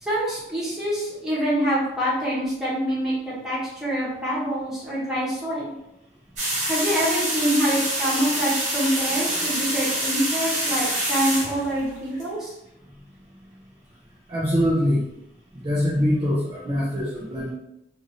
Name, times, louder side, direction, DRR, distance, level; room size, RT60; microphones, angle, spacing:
voice 1, 0.0-5.7 6.7-12.5, equal, 5° right, -9 dB, 1.0 m, -25 dB
sound 1, 6.4-12.2, right 1 dB, 45° right, 1.1 m, -26 dB
voice 2, 14.3-15.1 15.5-17.5, equal, 30° right, -8 dB, 0.5 m, -23 dB
2.6 x 2.6 x 2.7 m, 0.85 s
head